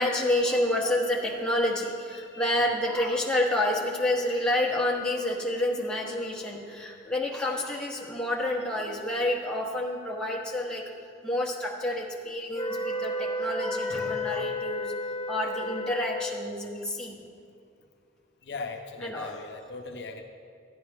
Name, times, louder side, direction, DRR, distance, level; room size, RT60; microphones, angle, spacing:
voice 1, 0.0-10.8 11.2-14.9 15.3-17.2 19.0-19.3, left 1 dB, 5° left, -3 dB, 1.0 m, -29 dB
voice 2, 2.1-2.7 18.4-20.2, left 3 dB, 65° left, 4 dB, 0.7 m, -39 dB
sound 1, 12.5-16.5, left 1 dB, 25° left, 0.4 m, -32 dB
11.5 x 10.5 x 3.5 m, 2.3 s
head